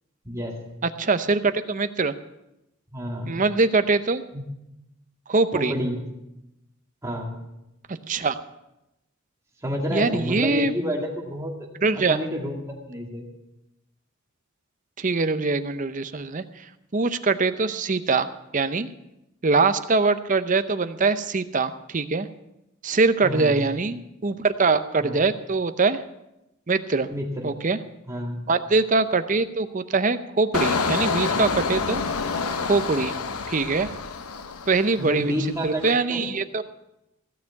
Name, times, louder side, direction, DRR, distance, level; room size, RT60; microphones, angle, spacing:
voice 1, 0.2-0.7 2.9-3.4 4.3-4.4 5.5-6.0 7.0-7.4 9.6-11.7 11.9-13.2 23.2-23.7 25.0-25.2 27.1-27.5 28.1-28.4 35.0-36.2, equal, 15° right, 0 dB, 2.1 m, -29 dB
voice 2, 1.0-2.1 3.3-4.2 5.3-5.7 7.9-8.3 9.9-10.7 11.8-12.2 15.0-16.7 16.9-18.9 19.4-22.3 22.8-26.0 26.7-27.1 27.4-27.8 28.5-32.0 32.7-33.1 33.5-33.9 34.7-35.3 35.6-36.6, right 3 dB, 35° right, 11 dB, 0.6 m, -23 dB
Engine, 30.5-35.2 35.6-35.9, left 4 dB, 90° left, 0.8 m, -27 dB
16.0 x 6.8 x 8.3 m, 0.91 s
head